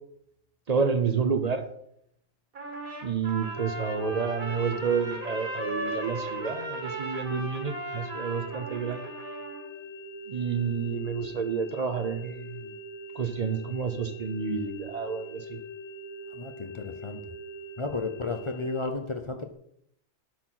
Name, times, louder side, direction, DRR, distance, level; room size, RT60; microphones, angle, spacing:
voice 1, 0.7-1.6 3.0-9.1 10.3-12.7 13.1-15.6, right 5 dB, 35° right, 9 dB, 0.7 m, -29 dB
Trumpet, 2.5-9.7, right 2 dB, 85° right, 2.3 m, -37 dB
sound 1, 3.4-18.9, equal, 70° left, 1.2 m, -43 dB
voice 2, 16.3-17.2 17.8-19.5, left 3 dB, 40° left, 6 dB, 0.4 m, -33 dB
12.0 x 4.6 x 5.7 m, 0.73 s
omnidirectional pair, 1.4 m